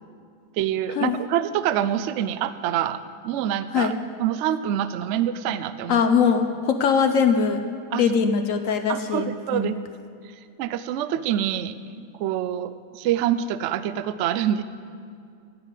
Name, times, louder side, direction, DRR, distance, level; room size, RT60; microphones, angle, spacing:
voice 1, 0.6-3.9 4.2-6.0 7.9-8.1 8.9-9.8 10.6-14.6, right 10 dB, 75° right, 13 dB, 0.6 m, -26 dB
voice 2, 5.9-7.6 7.9-9.7, left 6 dB, 65° left, 7 dB, 0.9 m, -21 dB
16.0 x 5.6 x 8.2 m, 2.3 s
omnidirectional pair, 1.8 m